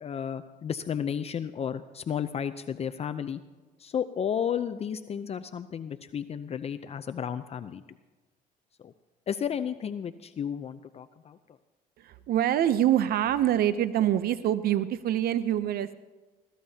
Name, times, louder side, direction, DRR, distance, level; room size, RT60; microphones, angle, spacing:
voice 1, 0.0-3.4 3.8-7.8 8.8-8.9 9.3-11.4, left 8 dB, 40° left, 10 dB, 0.5 m, -33 dB
voice 2, 12.0-15.9, right 11 dB, 65° right, 14 dB, 0.6 m, -25 dB
21.5 x 16.0 x 2.8 m, 1.3 s
cardioid pair, 110°, 17 cm